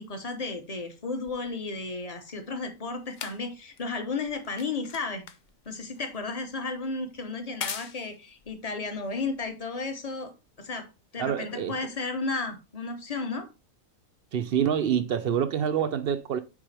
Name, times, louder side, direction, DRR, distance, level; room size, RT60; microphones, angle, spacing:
voice 1, 0.0-5.2 5.7-10.3 10.6-10.9 11.1-13.5, left 3 dB, 30° left, 0.9 m, -33 dB
sound 1, 1.3-9.9 10.7-10.8, left 7 dB, 85° left, 0.4 m, -44 dB
voice 2, 11.2-11.7 14.3-16.4, right 8 dB, 70° right, 0.5 m, -26 dB
7.2 x 4.8 x 3.3 m
omnidirectional pair, 1.5 m